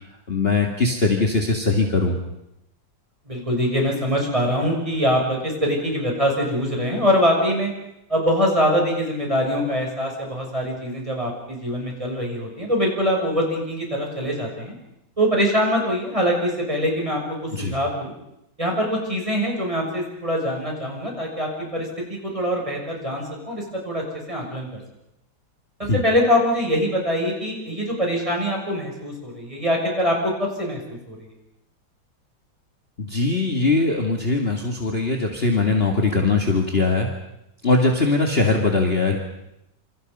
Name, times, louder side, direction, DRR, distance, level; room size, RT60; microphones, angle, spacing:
voice 1, 0.3-2.2 17.5-17.7 25.8-26.0 33.0-37.1 37.6-39.2, left 3 dB, 30° left, 2 dB, 2.3 m, -21 dB
voice 2, 3.3-7.7 8.1-14.8 15.2-18.1 18.6-24.7 25.8-31.3, equal, 15° right, 0 dB, 6.9 m, -23 dB
27.5 x 27.5 x 5.5 m, 0.85 s
omnidirectional pair, 2.1 m